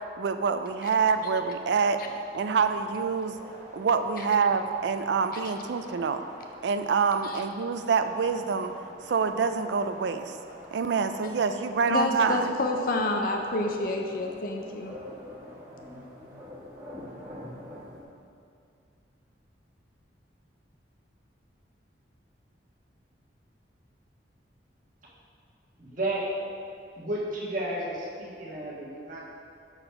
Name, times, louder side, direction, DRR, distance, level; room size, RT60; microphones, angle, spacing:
voice 1, 0.2-2.0 2.3-6.2 6.6-8.7 9.1-10.4 10.7-12.5, right 5 dB, 70° right, 9 dB, 0.4 m, -26 dB
sound 1, 0.8-18.0, equal, 15° right, 1.3 m, -47 dB
voice 2, 11.9-14.9, left 2 dB, 50° left, 2 dB, 0.5 m, -29 dB
voice 3, 25.8-26.3 27.0-29.2, right 1 dB, 45° right, -6 dB, 1.5 m, -32 dB
7.0 x 4.1 x 5.6 m, 2.4 s
head